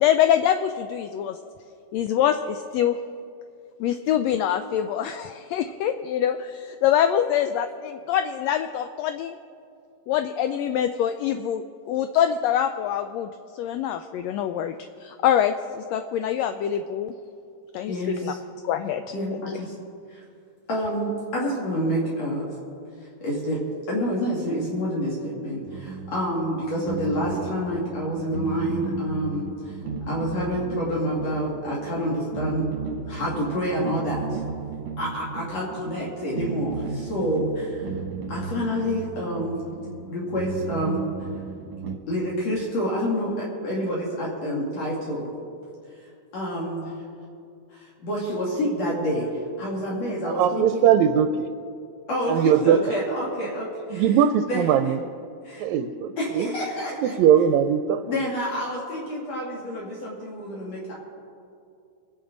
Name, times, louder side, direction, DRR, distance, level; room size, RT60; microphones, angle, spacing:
voice 1, 0.0-1.4 1.9-3.0 3.8-9.4 10.1-13.3 13.6-14.7 15.0-17.1 17.7-18.0 18.2-18.3 18.6-19.0 19.3-19.4, left 10 dB, 80° left, 8 dB, 1.5 m, -24 dB
voice 2, 17.9-18.4 19.1-19.7 20.1-20.2 20.7-22.5 23.2-23.6 23.9-29.8 30.1-32.7 33.1-34.4 35.0-37.9 38.3-39.6 40.1-41.0 42.1-45.3 46.3-46.9 47.7-50.9 52.1-54.1 54.5-54.9 55.4-55.7 56.2-57.1 58.0-60.9, equal, 60° left, -5 dB, 3.2 m, -28 dB
sound 1, 25.6-42.0, right 6 dB, 55° right, 1.7 m, -35 dB
voice 3, 50.2-51.5 52.3-52.8 53.9-55.0 55.6-56.5 57.0-58.0, right 9 dB, 80° right, 8 dB, 1.8 m, -20 dB
24.5 x 10.0 x 3.9 m, 2.5 s
omnidirectional pair, 3.4 m